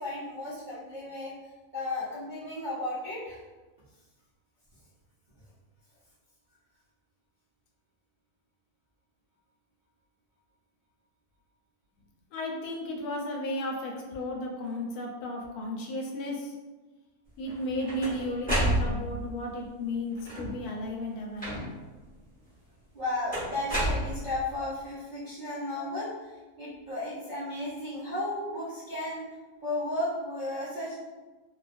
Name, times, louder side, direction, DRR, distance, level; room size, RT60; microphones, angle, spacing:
voice 1, 0.0-1.3 1.7-3.4 22.9-29.2 29.6-30.9, left 1 dB, 45° right, -11 dB, 0.6 m, -34 dB
voice 2, 12.3-16.5 17.4-21.5, left 1 dB, 80° left, 0 dB, 1.1 m, -34 dB
sound 1, 17.5-19.3 20.2-20.7 21.4-21.9 23.3-24.6, right 1 dB, 5° left, 0.9 m, -30 dB
2.7 x 2.3 x 2.5 m, 1.2 s
omnidirectional pair, 1.6 m